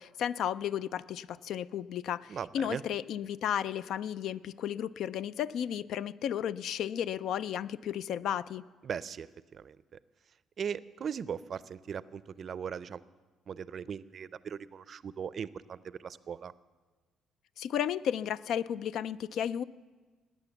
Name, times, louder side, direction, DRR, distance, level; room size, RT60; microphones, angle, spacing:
voice 1, 0.0-8.6 17.6-19.6, left 9 dB, 70° left, 17 dB, 0.4 m, -33 dB
voice 2, 2.3-2.8 8.8-9.3 9.5-10.0 10.6-13.0 13.5-16.5, right 7 dB, 45° right, 17 dB, 0.5 m, -39 dB
18.5 x 9.1 x 7.1 m, 1.4 s
cardioid pair, 105°, 0 cm